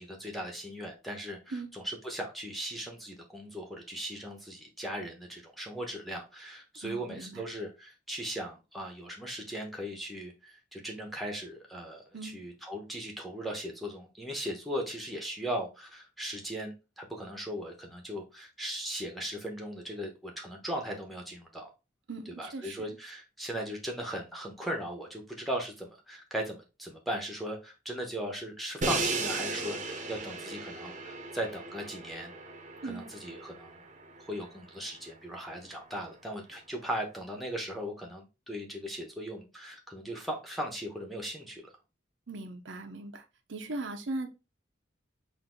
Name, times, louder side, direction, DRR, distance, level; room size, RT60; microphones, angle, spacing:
voice 1, 0.0-21.7 22.4-32.3 32.8-33.8 34.3-41.6, equal, ahead, 0.9 m, -38 dB
voice 2, 6.8-7.5 12.1-12.4 22.1-23.0 32.8-33.1 42.3-43.2 43.5-44.3, right 2 dB, 85° right, 0.7 m, -39 dB
Crash cymbal, 28.8-34.8, right 3 dB, 40° right, 0.7 m, -36 dB
4.1 x 2.6 x 3.8 m
head